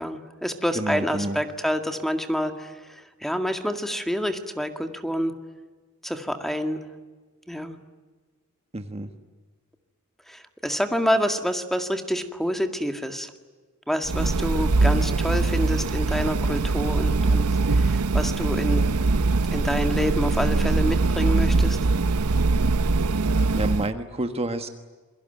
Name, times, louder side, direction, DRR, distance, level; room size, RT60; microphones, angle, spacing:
voice 1, 0.0-2.7 3.2-5.3 6.0-6.8 7.5-7.8 10.3-13.3 13.9-17.5 17.7-18.9 19.5-21.8, equal, ahead, 6 dB, 2.0 m, -27 dB
voice 2, 0.7-1.4 8.7-9.1 23.5-24.7, right 2 dB, 25° right, 7 dB, 1.5 m, -29 dB
sound 1, 14.0-23.9, right 3 dB, 85° right, 0.8 m, -22 dB
27.5 x 23.0 x 9.2 m, 1.3 s
head